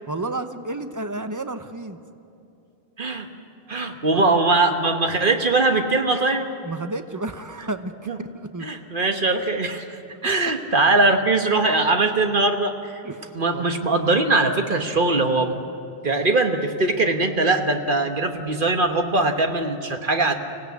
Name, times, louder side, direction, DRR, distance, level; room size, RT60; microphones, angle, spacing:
voice 1, 0.1-2.0 4.1-4.2 6.6-7.9 8.2-8.7 13.0-13.7, right 2 dB, 20° right, 9 dB, 0.8 m, -31 dB
voice 2, 3.0-3.3 3.7-6.5 8.1-8.2 8.6-13.0 13.3-15.5 16.0-20.3, right 2 dB, 55° right, 5 dB, 1.4 m, -21 dB
25.0 x 17.5 x 8.2 m, 2.7 s
omnidirectional pair, 1.0 m